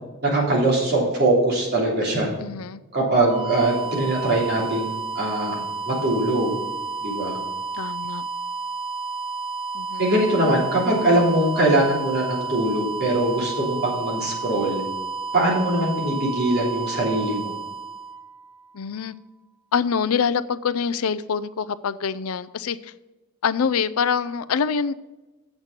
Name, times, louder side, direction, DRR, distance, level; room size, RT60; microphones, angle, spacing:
voice 1, 0.2-2.3 2.9-5.6 5.9-6.6 7.0-7.4 10.0-14.8 15.3-17.5, right 1 dB, 50° right, -3 dB, 3.3 m, -22 dB
voice 2, 2.4-2.8 7.7-8.3 9.7-10.1 18.7-19.1 19.7-22.9 23.4-24.9, left 6 dB, 90° left, 14 dB, 0.5 m, -25 dB
sound 1, 3.0-18.8, right 4 dB, 25° right, 0.8 m, -31 dB
8.1 x 7.3 x 5.2 m, 1.1 s
head